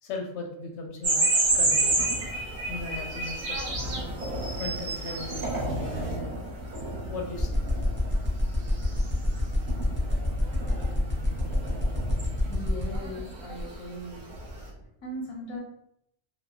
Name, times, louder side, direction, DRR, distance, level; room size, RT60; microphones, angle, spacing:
voice 1, 0.0-1.3 1.5-2.1 2.7-3.8 4.6-6.5 7.1-7.6, left 3 dB, 90° left, 2 dB, 0.9 m, -37 dB
sound 1, 1.0-6.2 6.7-6.8 8.8-9.1 9.4-9.5 10.4-10.9 12.2-12.3 12.9-13.2 13.4-13.7, right 2 dB, 70° right, 0.9 m, -28 dB
sound 2, 1.5-14.8, equal, 50° right, 1.3 m, -38 dB
sound 3, 7.4-13.0, left 1 dB, 15° right, 0.5 m, -29 dB
voice 2, 12.5-14.2 15.0-15.6, equal, 35° left, -2 dB, 0.5 m, -38 dB
2.9 x 2.1 x 2.3 m, 0.77 s
omnidirectional pair, 1.1 m